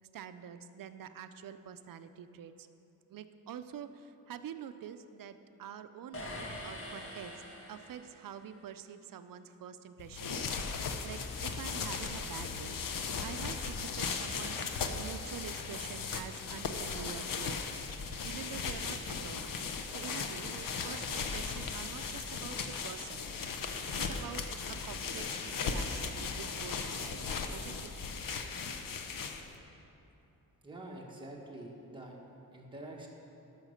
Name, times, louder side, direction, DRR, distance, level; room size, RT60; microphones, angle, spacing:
voice 1, 0.0-2.7 3.1-7.4 7.7-17.9 18.2-27.9, right 8 dB, 70° right, 11 dB, 0.6 m, -47 dB
sound 1, 6.1-8.4, left 1 dB, 40° left, 1.5 m, -44 dB
sound 2, 10.0-29.6, left 5 dB, 65° left, 0.8 m, -37 dB
voice 2, 30.6-32.2 32.5-33.1, right 1 dB, 15° right, -2 dB, 1.5 m, -46 dB
11.5 x 6.5 x 6.4 m, 2.9 s
wide cardioid pair, 135°, 35 cm